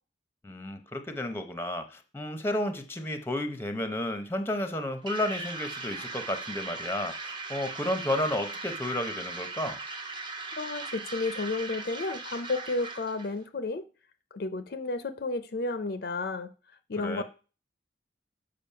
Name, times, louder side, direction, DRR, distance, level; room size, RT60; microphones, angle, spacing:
voice 1, 0.4-9.8 17.0-17.2, left 1 dB, 10° left, 0.7 m, -32 dB
sound 1, 5.1-13.3, right 3 dB, 25° right, 0.8 m, -39 dB
voice 2, 10.6-13.8 14.3-16.5 16.9-17.2, left 3 dB, 50° left, 0.5 m, -32 dB
6.9 x 5.3 x 5.6 m
head